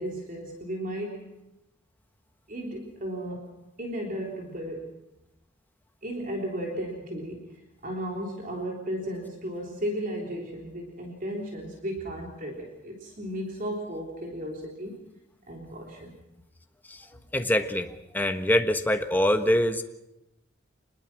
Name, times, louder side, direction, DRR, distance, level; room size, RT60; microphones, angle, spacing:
voice 1, 0.0-1.3 2.5-3.5 3.8-4.9 6.0-15.0 15.5-16.2, equal, 45° right, 1 dB, 3.6 m, -35 dB
voice 2, 17.3-19.8, left 1 dB, 10° left, 6 dB, 1.3 m, -24 dB
26.0 x 20.5 x 6.1 m, 0.90 s
head